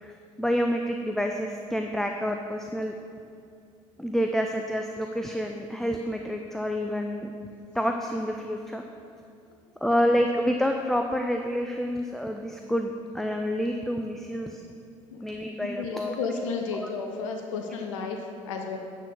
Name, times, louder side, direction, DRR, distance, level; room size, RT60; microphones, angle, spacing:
voice 1, 0.4-2.9 4.0-7.3 7.7-8.8 9.8-14.6 15.2-16.2 16.7-16.9, equal, ahead, 3 dB, 0.5 m, -28 dB
voice 2, 15.6-18.8, left 4 dB, 65° left, 4 dB, 0.7 m, -33 dB
9.6 x 4.4 x 6.8 m, 2.4 s
figure-of-eight pair, 55°, 17 cm